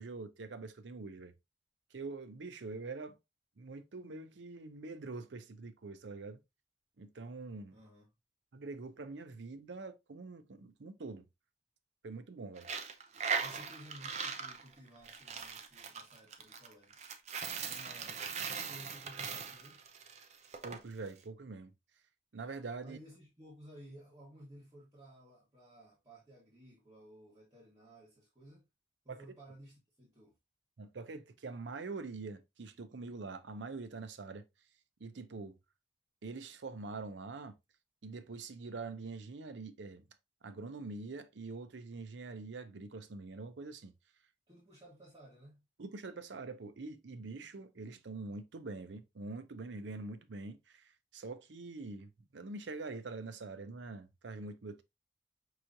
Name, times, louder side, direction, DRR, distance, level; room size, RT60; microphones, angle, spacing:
voice 1, 0.0-1.3 1.9-3.2 3.6-6.4 7.0-7.8 8.5-11.2 12.0-12.7 20.6-21.7 22.3-23.0 29.1-29.2 30.8-34.4 35.0-35.6 36.2-37.5 38.0-40.0 40.4-43.9 45.8-54.8, right 3 dB, 85° right, 0.6 m, -44 dB
voice 2, 7.7-8.1 13.4-17.0 17.6-18.2 18.6-19.8 22.8-28.7 29.0-30.4 44.5-45.7, right 1 dB, 20° right, 1.4 m, -56 dB
Coin (dropping), 12.6-20.8, right 5 dB, 40° right, 0.5 m, -40 dB
5.5 x 3.0 x 2.5 m
head